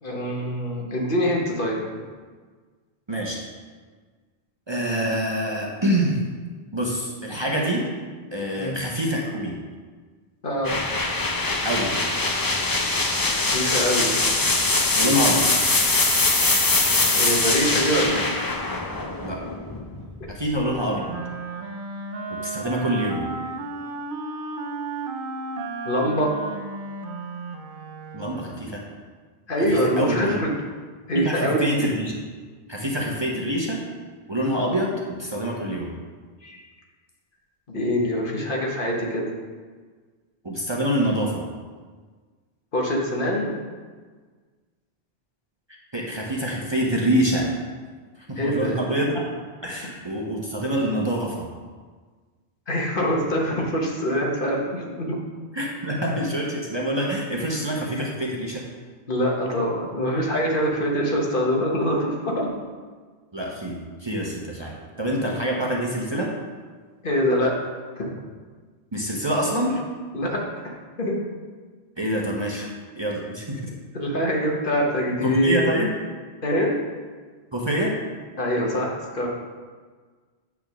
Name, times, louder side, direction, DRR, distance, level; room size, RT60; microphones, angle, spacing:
voice 1, 0.0-1.8 8.6-8.8 10.4-10.8 13.4-14.1 17.1-18.4 25.8-26.4 29.5-30.5 31.1-31.6 36.4-36.6 37.7-39.3 42.7-43.6 48.4-48.7 52.7-55.2 59.1-62.5 67.0-67.6 68.0-68.1 70.1-70.4 71.0-71.2 72.5-72.7 73.9-75.6 76.4-76.8 78.4-79.3, equal, 55° left, -1 dB, 1.3 m, -24 dB
voice 2, 3.1-3.5 4.7-6.2 6.7-7.9 8.3-9.6 11.6-12.0 14.9-15.5 19.2-19.4 20.3-21.0 22.4-23.3 28.1-28.8 29.6-30.4 31.1-32.1 32.7-33.8 34.3-35.9 40.4-41.5 45.9-47.5 48.2-49.2 49.6-51.5 55.5-58.6 63.3-66.3 68.9-69.8 72.0-72.7 73.0-73.6 75.2-75.9 77.5-77.9, equal, 30° right, -2 dB, 0.8 m, -26 dB
sound 1, 10.6-20.4, left 2 dB, 25° left, 0.5 m, -22 dB
Wind instrument woodwind instrument, 20.6-28.6, right 3 dB, 60° right, 0.8 m, -34 dB
8.9 x 3.5 x 6.1 m, 1.5 s
omnidirectional pair, 1.1 m